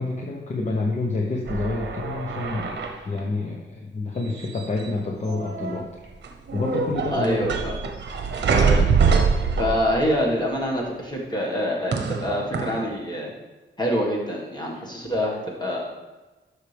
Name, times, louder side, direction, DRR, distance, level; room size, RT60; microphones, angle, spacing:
voice 1, 0.0-2.8 3.0-5.9 6.5-7.5, left 3 dB, 40° left, 0 dB, 0.8 m, -28 dB
sound 1, 1.5-3.2 4.4-5.0 5.2-5.9 6.2-10.2 11.9-12.8, right 5 dB, 60° right, 0.9 m, -24 dB
voice 2, 7.1-7.8 8.6-8.9 9.6-13.3 13.8-15.9, equal, 20° left, -2 dB, 1.7 m, -26 dB
11.5 x 6.5 x 3.4 m, 1.1 s
wide cardioid pair, 150°, 20 cm